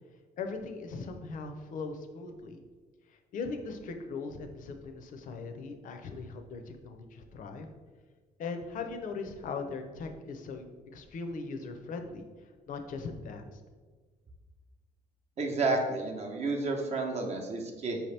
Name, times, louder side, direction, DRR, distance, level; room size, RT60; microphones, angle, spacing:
voice 1, 0.4-2.6 3.3-7.7 8.4-10.7 10.9-12.2 12.7-13.4, left 4 dB, 60° left, 6 dB, 0.5 m, -39 dB
voice 2, 15.4-18.0, right 3 dB, 45° right, 1 dB, 0.7 m, -31 dB
4.7 x 2.9 x 3.2 m, 1.4 s
cardioid pair, 90°, 15 cm